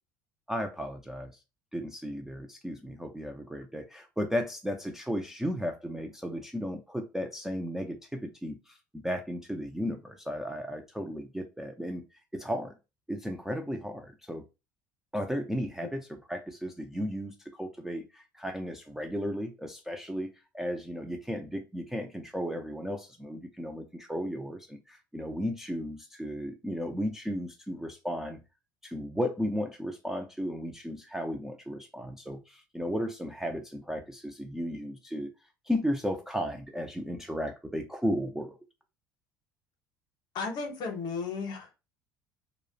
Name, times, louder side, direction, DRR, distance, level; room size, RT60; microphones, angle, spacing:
voice 1, 0.5-1.3 1.7-12.0 12.3-12.7 13.1-14.4 15.1-28.4 28.8-35.3 35.7-38.6, equal, 5° right, 3 dB, 0.3 m, -34 dB
voice 2, 40.3-41.7, left 4 dB, 45° left, 4 dB, 0.7 m, -34 dB
2.3 x 2.0 x 2.6 m, 0.27 s
figure-of-eight pair, 60°, 11 cm